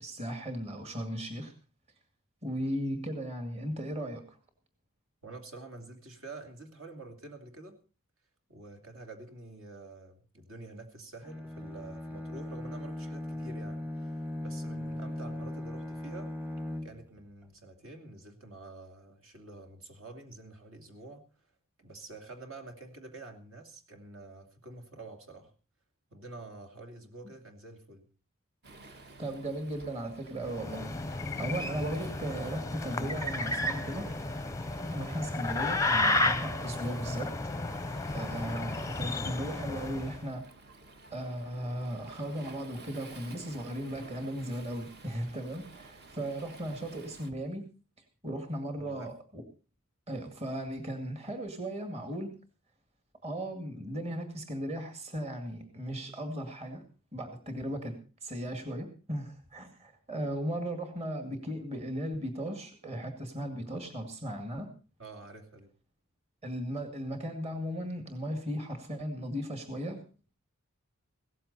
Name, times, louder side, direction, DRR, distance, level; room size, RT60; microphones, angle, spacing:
voice 1, 0.0-1.5 2.4-4.4 29.2-34.1 34.9-37.3 37.7-40.5 41.1-47.6 48.2-49.4 50.1-52.3 53.2-56.8 57.1-64.7 66.4-70.0, right 1 dB, 30° right, 5 dB, 2.2 m, -36 dB
voice 2, 5.2-7.8 8.5-16.3 16.8-21.2 21.8-25.5 26.1-28.1 48.7-49.1 65.0-65.7, right 2 dB, 65° right, 5 dB, 2.7 m, -48 dB
Bowed string instrument, 11.2-17.2, left 1 dB, 10° right, 1.0 m, -38 dB
Waves surf, 28.6-47.3, right 2 dB, 50° right, 1.5 m, -52 dB
sound 1, 30.4-40.2, left 2 dB, 15° left, 0.6 m, -32 dB
17.0 x 14.0 x 4.1 m, 0.35 s
head